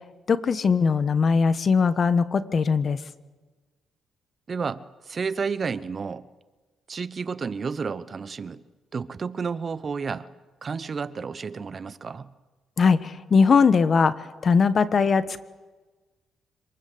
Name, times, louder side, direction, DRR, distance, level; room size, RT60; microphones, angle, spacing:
voice 1, 0.3-3.0 12.8-15.4, left 5 dB, 45° left, 1.4 m, -20 dB
voice 2, 4.5-6.3 6.9-8.6 8.9-10.3 10.6-12.3, right 5 dB, 40° right, 0.9 m, -31 dB
26.0 x 20.0 x 8.0 m
cardioid pair, 90°, 0 cm